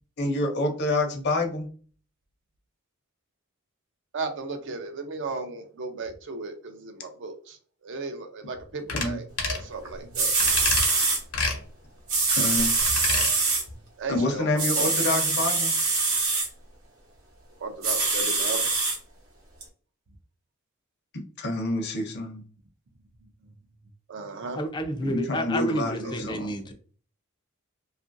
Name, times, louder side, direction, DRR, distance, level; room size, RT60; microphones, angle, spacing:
voice 1, 0.2-1.7 8.9-9.2 12.4-12.7 14.1-15.7 21.4-22.4 25.0-26.6, left 2 dB, 50° left, 3 dB, 0.7 m, -27 dB
voice 2, 4.1-7.6 7.8-10.3 14.0-15.0 17.6-18.7 24.1-24.6 26.0-26.3, right 3 dB, 55° right, 8 dB, 0.5 m, -35 dB
sound 1, 8.9-9.1 9.4-9.7 10.4-10.9 11.3-11.6 12.8-13.3 13.7-13.8, left 4 dB, 85° left, 0.8 m, -28 dB
sound 2, 9.8-9.9 10.1-11.2 12.1-13.6 14.6-16.5 17.8-19.0 19.6-19.7, right 3 dB, 75° right, 0.8 m, -24 dB
voice 3, 24.6-26.7, equal, 20° left, 6 dB, 0.4 m, -30 dB
2.9 x 2.4 x 2.5 m, 0.42 s
head